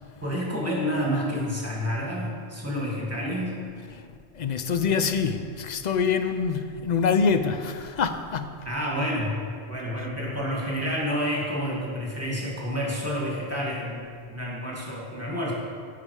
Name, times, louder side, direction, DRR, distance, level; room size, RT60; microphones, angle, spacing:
voice 1, 0.2-3.5 8.7-9.4 9.7-15.5, equal, 15° right, -4 dB, 2.0 m, -29 dB
voice 2, 4.3-8.7, left 5 dB, 50° left, 9 dB, 0.5 m, -25 dB
14.0 x 5.8 x 4.8 m, 2.2 s
omnidirectional pair, 1.1 m